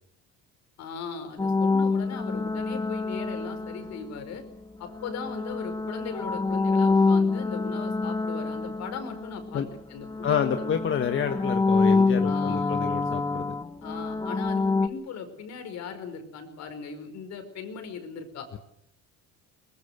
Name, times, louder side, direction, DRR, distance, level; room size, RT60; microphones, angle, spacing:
voice 1, 0.8-4.4 4.8-9.6 9.9-10.8 12.2-12.8 13.8-18.5, left 6 dB, 65° left, 7 dB, 5.3 m, -38 dB
sound 1, 1.4-4.3 5.0-9.8 10.0-14.9, left 3 dB, 15° left, 1.5 m, -26 dB
voice 2, 10.2-13.5, left 8 dB, 40° left, 6 dB, 1.5 m, -28 dB
23.0 x 21.0 x 8.1 m, 0.77 s
cardioid pair, 115°, 30 cm